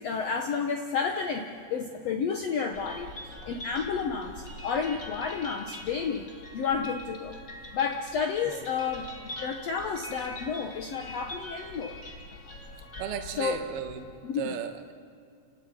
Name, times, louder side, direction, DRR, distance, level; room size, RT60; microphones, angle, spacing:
voice 1, 0.0-3.1 3.4-6.3 6.5-7.4 7.7-9.1 9.4-12.0 12.5-12.6 13.4-13.7 14.2-14.5, left 6 dB, 65° left, 4 dB, 1.6 m, -31 dB
sound 1, 2.7-14.0, left 1 dB, 25° left, 2.3 m, -43 dB
voice 2, 13.0-14.9, right 9 dB, 75° right, 6 dB, 3.2 m, -36 dB
29.5 x 19.5 x 9.0 m, 2.4 s
omnidirectional pair, 4.6 m